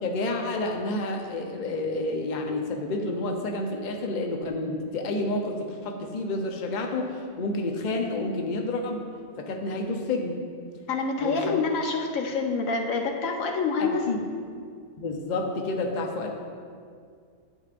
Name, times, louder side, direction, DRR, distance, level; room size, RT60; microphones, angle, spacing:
voice 1, 0.0-9.1 9.4-10.4 11.2-11.6 13.8-14.2 15.0-16.3, left 2 dB, 45° left, 2 dB, 0.7 m, -29 dB
voice 2, 10.9-14.0, left 4 dB, 80° left, 3 dB, 1.2 m, -27 dB
9.9 x 8.1 x 2.5 m, 2.2 s
omnidirectional pair, 1.4 m